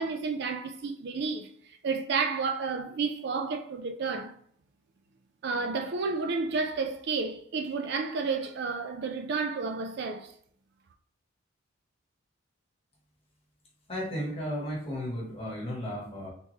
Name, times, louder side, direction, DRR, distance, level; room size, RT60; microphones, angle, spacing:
voice 1, 0.0-1.5 1.8-4.3 5.4-10.3, right 4 dB, 50° right, 0.3 m, -31 dB
voice 2, 13.9-16.3, equal, 30° left, 1.1 m, -34 dB
3.5 x 2.9 x 3.0 m
head